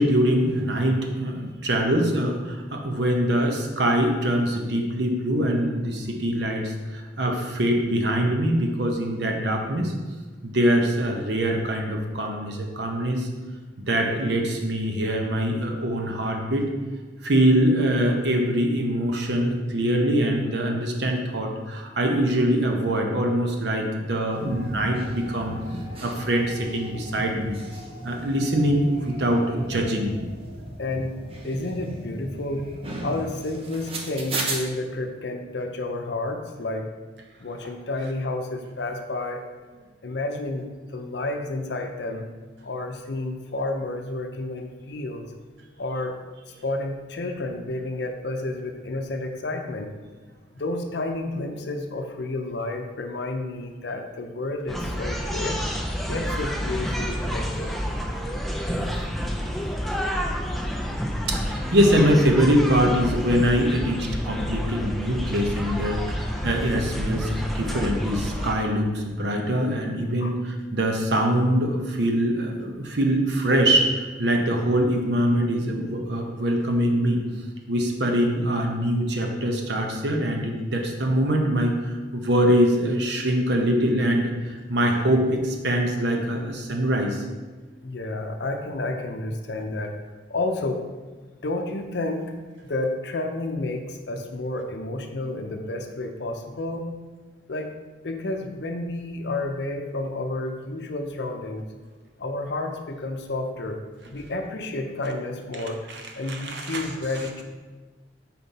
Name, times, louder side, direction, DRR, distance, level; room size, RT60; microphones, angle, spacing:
voice 1, 0.0-9.9 10.4-13.3 13.9-16.7 17.2-25.5 26.0-27.6 28.0-30.1 58.9-59.0 61.1-77.2 77.7-87.2 105.9-106.0 106.3-106.9, equal, 65° right, 2 dB, 0.8 m, -23 dB
sound 1, 24.3-34.6, right 2 dB, 30° right, 0.7 m, -36 dB
voice 2, 30.8-31.2 31.4-32.7 33.0-36.9 37.4-39.4 40.0-42.3 42.6-45.3 45.8-46.2 46.6-49.9 50.5-55.6 56.1-57.7 70.2-70.3 87.8-90.0 90.3-90.9 91.4-92.3 92.6-96.9 97.5-97.7 98.0-101.6 102.2-103.8 104.1-105.8 106.2-107.4, left 2 dB, 65° left, 4 dB, 0.6 m, -30 dB
sound 2, 54.7-68.5, equal, ahead, 0.4 m, -29 dB
5.4 x 4.3 x 4.1 m, 1.3 s
head